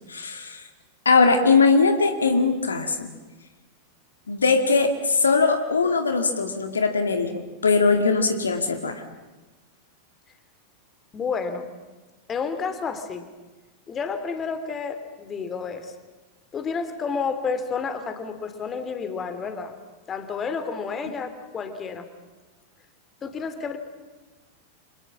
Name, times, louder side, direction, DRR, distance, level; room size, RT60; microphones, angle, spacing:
voice 1, 0.1-0.6 1.1-3.1 4.3-9.0, left 4 dB, 75° left, 7 dB, 2.1 m, -21 dB
voice 2, 11.1-11.7 12.3-13.3 13.9-15.9 16.5-19.7 20.1-22.1 23.2-23.8, left 5 dB, 25° left, 9 dB, 2.8 m, -30 dB
30.0 x 26.0 x 7.3 m, 1.2 s
figure-of-eight pair, 90°, 0 cm